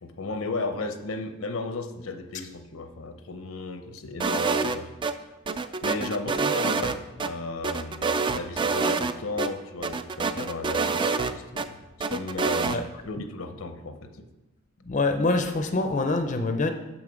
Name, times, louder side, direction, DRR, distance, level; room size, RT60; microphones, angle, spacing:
voice 1, 0.0-4.9 5.5-11.8 12.1-14.3, left 3 dB, 80° left, 8 dB, 0.8 m, -35 dB
sound 1, 4.2-5.1 5.5-7.3 7.6-9.1 9.4-9.5 9.8-11.7 12.0-12.8, right 4 dB, 25° right, 0.3 m, -26 dB
voice 2, 14.8-16.7, left 2 dB, 35° left, 6 dB, 0.5 m, -25 dB
7.0 x 6.4 x 5.1 m, 1.0 s
head